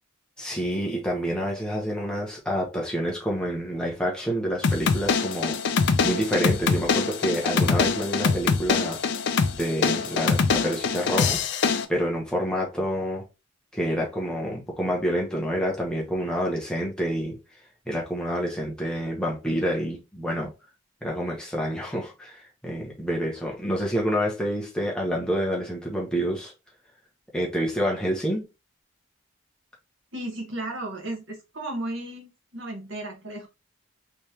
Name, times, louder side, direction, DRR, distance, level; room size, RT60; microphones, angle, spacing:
voice 1, 0.4-5.6 6.0-9.0 9.5-11.4 11.9-13.2 13.7-17.4 17.9-20.5 21.0-26.5 27.3-28.5, equal, 5° left, 0.9 m, -28 dB
sound 1, 4.6-11.8, left 5 dB, 55° left, 0.4 m, -24 dB
voice 2, 30.1-33.5, right 1 dB, 55° right, 1.3 m, -34 dB
3.4 x 3.2 x 2.8 m
head